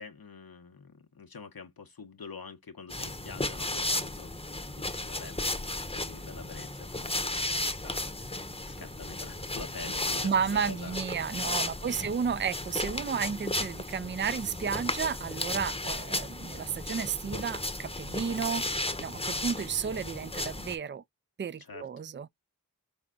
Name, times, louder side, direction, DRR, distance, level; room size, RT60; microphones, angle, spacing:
voice 1, 0.0-4.3 4.8-5.5 5.9-10.3 10.6-11.0 11.8-12.1 21.6-22.0, left 5 dB, 75° left, 1.0 m, -46 dB
sound 1, 2.9-20.8, left 2 dB, 15° left, 0.9 m, -34 dB
voice 2, 10.2-21.0 21.4-22.3, right 7 dB, 30° right, 0.4 m, -32 dB
5.4 x 2.2 x 3.7 m
wide cardioid pair, 50°, 36 cm